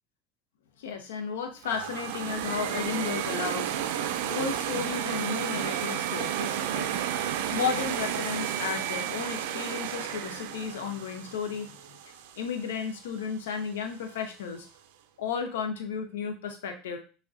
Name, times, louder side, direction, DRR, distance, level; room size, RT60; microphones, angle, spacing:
voice 1, 0.8-11.7 12.4-14.7 15.2-17.0, left 6 dB, 80° left, 4 dB, 0.6 m, -34 dB
sound 1, 1.6-12.6, right 10 dB, 75° right, 0.3 m, -32 dB
5.9 x 2.1 x 2.5 m, 0.36 s
hypercardioid pair, 85°, 0 cm